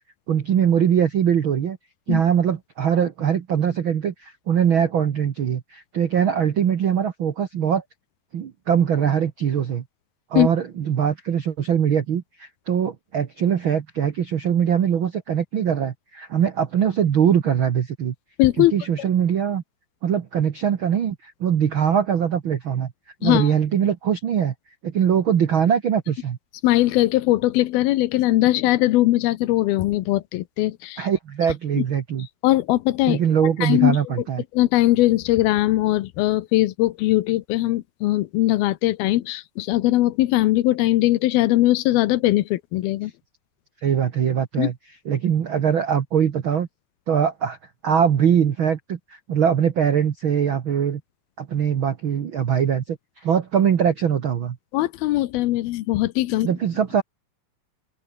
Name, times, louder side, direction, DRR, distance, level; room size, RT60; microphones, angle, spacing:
voice 1, 0.3-1.8 2.1-7.8 8.3-9.8 10.3-18.1 18.6-19.6 20.0-22.9 23.2-24.5 24.8-26.4 31.0-32.3 33.1-34.4 43.8-44.7 45.0-46.7 47.1-47.6 47.8-51.0 51.4-54.6 56.4-57.0, right 8 dB, 75° right, 1.1 m, -22 dB
voice 2, 18.4-18.7 23.2-23.5 26.6-31.1 32.4-33.2 33.6-34.0 34.5-43.1 44.6-44.7 54.7-56.5, left 16 dB, 90° left, 2.8 m, -20 dB
open air
omnidirectional pair, 4.3 m